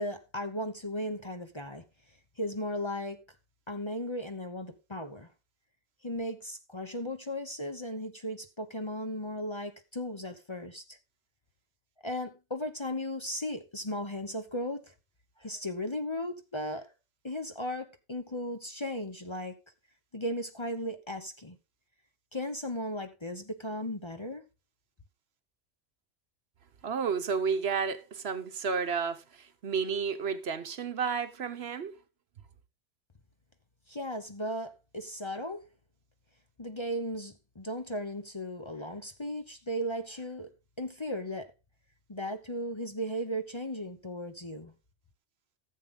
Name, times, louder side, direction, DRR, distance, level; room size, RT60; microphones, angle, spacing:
voice 1, 0.0-1.8 2.4-3.2 3.7-5.3 6.0-11.0 12.0-14.9 15.4-16.9 17.2-19.6 20.1-21.6 22.3-24.5 33.9-35.6 36.6-40.5 40.8-41.5 42.1-44.7, equal, 25° left, 0.9 m, -36 dB
voice 2, 26.8-31.9, right 6 dB, 60° right, 1.1 m, -31 dB
14.5 x 7.5 x 3.7 m
omnidirectional pair, 1.2 m